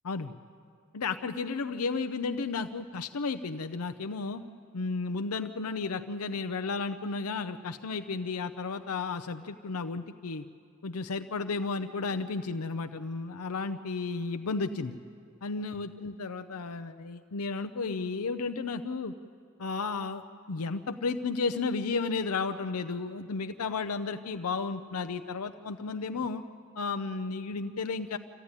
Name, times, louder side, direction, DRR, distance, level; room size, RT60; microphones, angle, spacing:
voice 1, 0.9-4.4 4.7-10.4 10.8-15.0 15.4-19.1 19.6-20.2 20.5-26.4 26.8-28.2, left 4 dB, 85° left, 9 dB, 0.7 m, -33 dB
25.5 x 15.0 x 9.7 m, 2.3 s
head